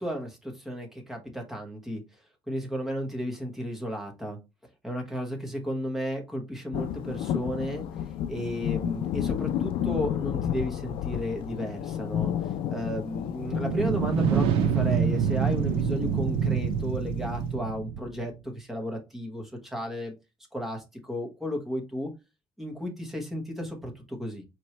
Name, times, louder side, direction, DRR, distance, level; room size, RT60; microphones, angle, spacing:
voice 1, 0.0-2.0 2.5-4.4 4.8-7.9 8.3-12.3 12.7-20.1 20.5-22.1 22.6-24.4, equal, 5° right, 1 dB, 1.0 m, -34 dB
sound 1, 6.7-17.5, left 10 dB, 70° left, 0.4 m, -32 dB
sound 2, 13.4-18.3, right 7 dB, 90° right, 0.5 m, -26 dB
4.3 x 3.0 x 3.2 m, 0.25 s
cardioid pair, 170°, 9 cm